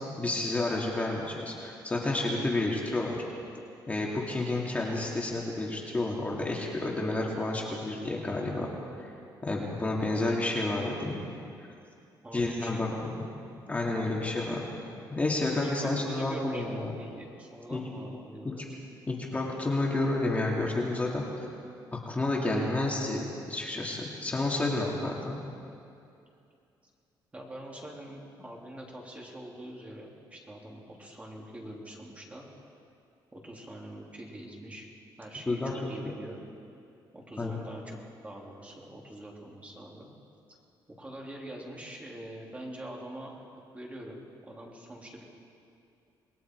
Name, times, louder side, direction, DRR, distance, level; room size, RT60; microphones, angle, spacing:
voice 1, 0.2-3.2 3.9-8.7 9.0-9.1 9.4-11.2 11.6-11.7 12.3-13.1 13.7-14.7 15.1-16.9 17.7-17.8 18.4-18.5 19.1-21.5 21.9-25.4 35.5-35.7 37.4-37.6, left 2 dB, 15° left, -3 dB, 2.6 m, -30 dB
voice 2, 12.2-13.2 15.6-18.7 27.3-32.5 33.3-34.9 35.2-36.4 37.1-38.0 38.2-40.1 41.0-43.4 43.7-45.2, right 1 dB, 15° right, -1 dB, 3.3 m, -44 dB
27.5 x 21.0 x 4.7 m, 2.5 s
cardioid pair, 130°, 8 cm